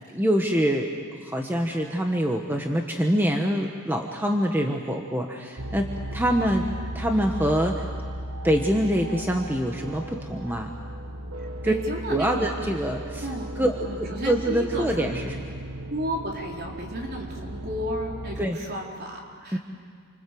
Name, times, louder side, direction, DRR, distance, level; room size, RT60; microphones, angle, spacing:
voice 1, 0.1-0.9 1.2-5.9 6.1-6.7 6.9-7.9 8.4-10.7 11.6-11.7 12.1-13.3 13.6-15.4 18.4-18.6 19.5-19.6, equal, 10° right, 2 dB, 1.3 m, -25 dB
sound 1, 5.6-18.5, right 1 dB, 75° right, 1.3 m, -36 dB
voice 2, 11.4-12.5 13.2-15.1 15.9-19.6, equal, 50° right, -1 dB, 4.4 m, -33 dB
29.0 x 25.5 x 7.8 m, 2.1 s
head